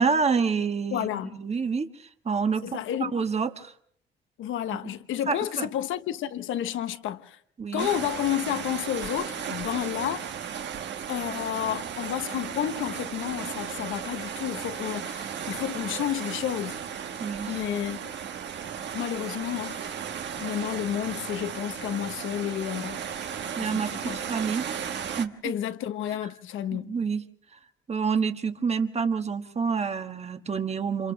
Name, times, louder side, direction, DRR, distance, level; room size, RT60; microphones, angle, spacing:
voice 1, 0.0-1.9 2.2-3.7 4.8-4.9 5.3-5.7 7.6-7.9 17.2-17.6 23.6-24.6 25.2-25.5 26.7-27.2 27.9-31.1, right 5 dB, 35° right, 1.5 m, -28 dB
voice 2, 0.9-1.4 2.6-3.2 4.4-7.4 7.7-10.3 11.1-16.8 17.5-18.1 18.9-19.8 20.4-23.0 23.6-24.2 25.4-26.9, left 11 dB, 80° left, 1.1 m, -31 dB
sound 1, 7.8-25.3, right 8 dB, 65° right, 1.4 m, -35 dB
29.5 x 26.5 x 3.4 m
cardioid pair, 90°, 20 cm